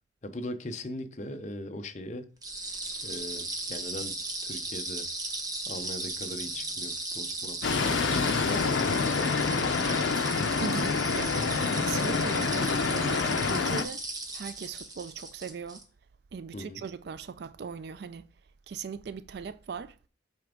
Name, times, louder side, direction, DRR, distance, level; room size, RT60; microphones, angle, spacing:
voice 1, 0.2-2.3 3.0-4.2 4.4-5.1 5.7-9.5 16.5-16.8, left 1 dB, 40° left, 0.7 m, -40 dB
sound 1, 2.4-15.8, right 2 dB, 20° right, 0.8 m, -36 dB
sound 2, 7.6-13.8, left 5 dB, 80° left, 0.5 m, -27 dB
voice 2, 10.6-11.4 11.7-14.0 14.3-15.9 16.3-18.3 18.7-20.0, right 6 dB, 60° right, 0.3 m, -39 dB
8.2 x 3.5 x 3.7 m
head